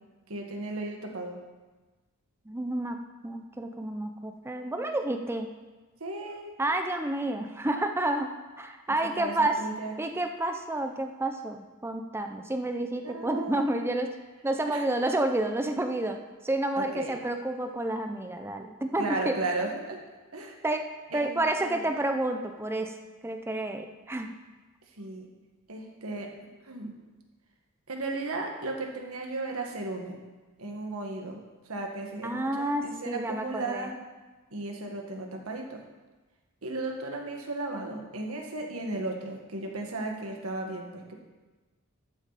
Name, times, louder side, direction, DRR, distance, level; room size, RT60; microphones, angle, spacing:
voice 1, 0.3-1.4 6.0-6.5 9.2-10.0 13.0-13.7 14.7-14.8 16.8-17.2 19.0-20.0 20.3-20.6 21.1-21.8 25.0-25.3 25.7-26.3 26.6-26.9 27.9-30.2 30.6-33.9 34.5-35.8 36.6-41.1, right 2 dB, 80° right, 2 dB, 1.7 m, -35 dB
voice 2, 2.5-3.0 3.2-5.5 6.6-8.3 8.6-9.6 10.0-14.1 14.4-16.2 16.4-19.3 20.6-20.9 21.1-22.9 23.2-24.3 32.2-33.9, right 1 dB, 10° right, 5 dB, 0.5 m, -30 dB
12.5 x 8.8 x 4.1 m, 1.2 s
head